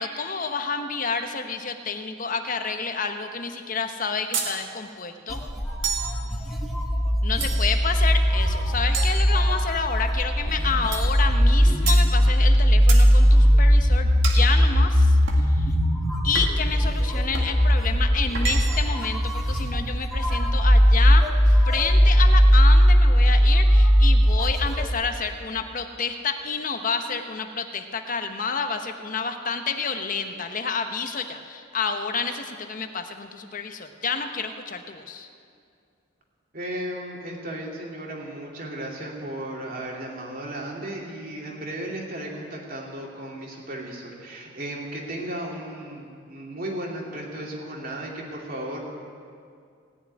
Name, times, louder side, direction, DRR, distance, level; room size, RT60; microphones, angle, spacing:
voice 1, 0.0-5.4 7.2-15.2 15.5-15.7 16.2-35.3, left 5 dB, 45° left, 7 dB, 1.0 m, -29 dB
sound 1, 4.3-4.6 5.8-6.2 7.4-7.9 8.9-9.8 10.9-11.2 11.9-12.1 12.9-13.1 14.2-14.5 15.3-15.5 16.3-16.7 17.3-17.6 18.3-18.9, right 6 dB, 70° right, 1.8 m, -31 dB
sound 2, 5.3-24.9, equal, ahead, 1.5 m, -19 dB
voice 2, 36.5-48.8, right 1 dB, 45° right, -1 dB, 2.7 m, -35 dB
17.5 x 7.1 x 9.7 m, 2.3 s
head